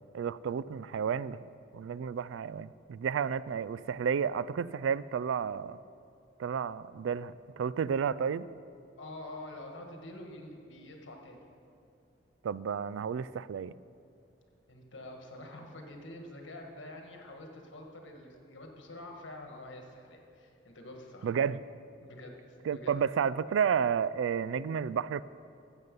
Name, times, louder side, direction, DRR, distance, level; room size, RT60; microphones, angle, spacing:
voice 1, 0.0-1.4 1.7-5.8 6.4-8.5 12.4-13.8 21.2-21.6 22.7-25.2, right 7 dB, 80° right, 19 dB, 0.3 m, -31 dB
voice 2, 9.0-11.4 14.7-21.3 22.0-22.9, left 1 dB, 75° left, 2 dB, 1.6 m, -47 dB
13.5 x 8.1 x 5.3 m, 2.5 s
head